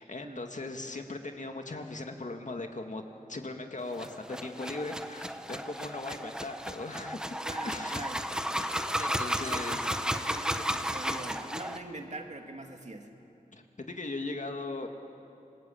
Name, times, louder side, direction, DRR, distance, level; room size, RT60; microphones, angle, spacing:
voice 1, 0.0-3.0 3.3-7.3 7.6-8.0 9.0-9.8 13.5-14.9, left 2 dB, 55° left, 4 dB, 2.1 m, -38 dB
sound 1, 3.9-11.8, equal, 5° right, 1.2 m, -33 dB
voice 2, 7.4-8.2 9.3-9.7 10.0-13.1, right 2 dB, 50° right, 3 dB, 2.5 m, -43 dB
27.5 x 20.5 x 8.7 m, 2.8 s
wide cardioid pair, 65°, 15 cm